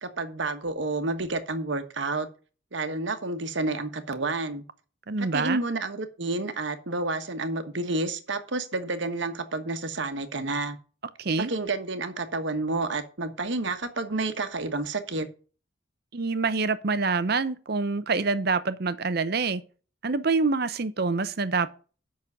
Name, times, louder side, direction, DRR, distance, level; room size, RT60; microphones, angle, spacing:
voice 1, 0.0-2.3 2.7-4.6 5.2-10.8 11.4-15.3, right 2 dB, 65° right, 1.2 m, -30 dB
voice 2, 5.1-5.6 11.2-11.5 16.1-19.6 20.0-21.7, right 4 dB, 50° right, 0.7 m, -26 dB
8.4 x 6.2 x 6.5 m
head